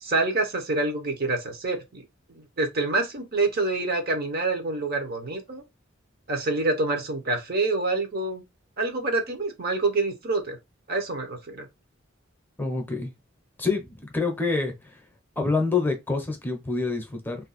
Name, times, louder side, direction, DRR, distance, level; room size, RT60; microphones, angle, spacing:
voice 1, 0.0-5.6 6.3-8.4 8.8-10.6 10.9-11.6, right 3 dB, 50° right, 0.8 m, -27 dB
voice 2, 12.6-13.1 13.6-15.0 15.4-17.4, left 3 dB, 10° left, 0.7 m, -27 dB
2.6 x 2.3 x 4.0 m
head